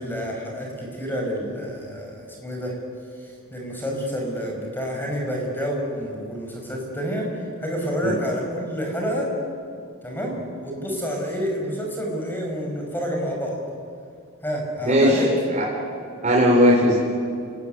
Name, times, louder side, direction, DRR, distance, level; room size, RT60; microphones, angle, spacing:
voice 1, 0.0-2.8 3.2-7.3 7.6-9.3 10.0-13.6 14.4-15.3, equal, 10° left, 0 dB, 6.0 m, -28 dB
voice 2, 14.8-15.2 15.5-15.6 16.2-17.0, equal, 35° right, -3 dB, 4.0 m, -17 dB
29.0 x 19.5 x 9.5 m, 2.5 s
head